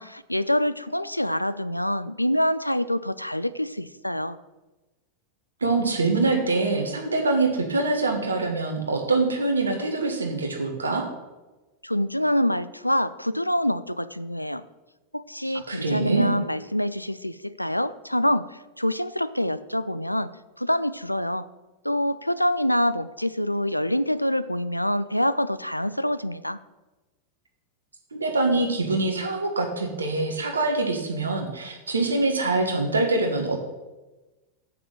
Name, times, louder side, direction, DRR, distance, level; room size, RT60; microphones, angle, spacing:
voice 1, 0.0-4.4 11.8-14.6 15.1-20.3 20.6-21.5 21.8-26.6, left 1 dB, 90° left, 14 dB, 0.3 m, -26 dB
voice 2, 5.6-11.1 15.4-16.3 28.1-33.6, right 3 dB, 75° right, 3 dB, 1.4 m, -24 dB
7.8 x 5.9 x 6.6 m, 1.1 s
figure-of-eight pair, 90°, 0 cm